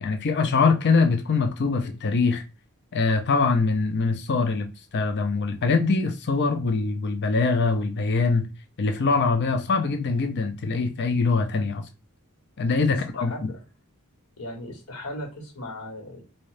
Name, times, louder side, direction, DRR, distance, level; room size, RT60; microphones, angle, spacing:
voice 1, 0.0-2.4 2.9-4.7 4.9-8.5 8.8-11.9 12.6-13.3, left 4 dB, 50° left, 0.5 m, -23 dB
voice 2, 12.9-13.4 14.4-16.2, left 1 dB, 90° left, 1.6 m, -37 dB
3.7 x 2.7 x 3.2 m
head